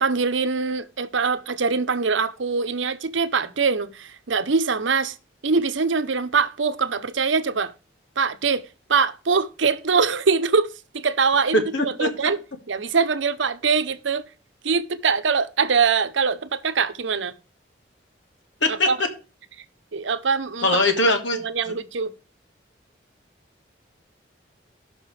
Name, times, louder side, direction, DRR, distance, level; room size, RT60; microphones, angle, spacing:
voice 1, 0.0-5.1 5.4-7.7 8.2-8.6 8.9-12.4 12.7-14.3 14.6-17.3 18.7-19.0 19.9-20.7 21.3-22.1, right 5 dB, 85° right, 0.8 m, -23 dB
voice 2, 11.5-12.3 18.6-18.9 20.6-21.4 21.7-21.8, left 2 dB, 85° left, 2.0 m, -21 dB
17.0 x 5.8 x 3.3 m
head